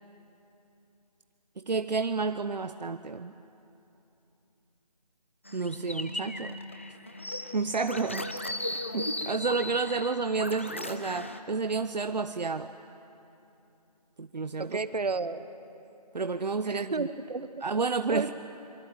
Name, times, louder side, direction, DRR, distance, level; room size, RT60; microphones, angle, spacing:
voice 1, 1.6-3.3 5.5-6.6 7.5-8.3 8.9-12.7 14.2-14.8 16.1-17.1 17.6-18.3, right 4 dB, 85° right, 10 dB, 0.8 m, -30 dB
sound 1, 5.5-11.4, left 1 dB, 20° left, 0.6 m, -37 dB
voice 2, 14.6-15.4 16.6-17.6 18.1-18.3, right 4 dB, 70° right, 13 dB, 1.2 m, -32 dB
25.0 x 23.5 x 8.9 m, 2.9 s
figure-of-eight pair, 170°, 21 cm